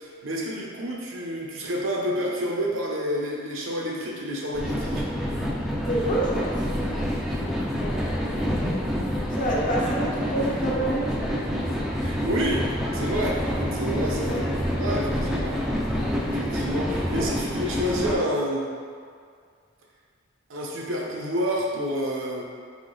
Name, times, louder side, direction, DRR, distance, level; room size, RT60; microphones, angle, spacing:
voice 1, 0.0-5.0 12.0-14.5 14.8-15.6 16.2-18.7 20.5-22.4, equal, 75° right, -3 dB, 0.7 m, -29 dB
sound 1, 4.5-18.2, equal, ahead, 0.3 m, -27 dB
voice 2, 5.9-6.6 7.8-8.1 8.4-8.8 9.3-11.3 13.9-14.0 14.3-14.4 17.2-17.4, right 1 dB, 40° left, -3 dB, 0.7 m, -28 dB
3.6 x 3.0 x 3.9 m, 2.1 s
head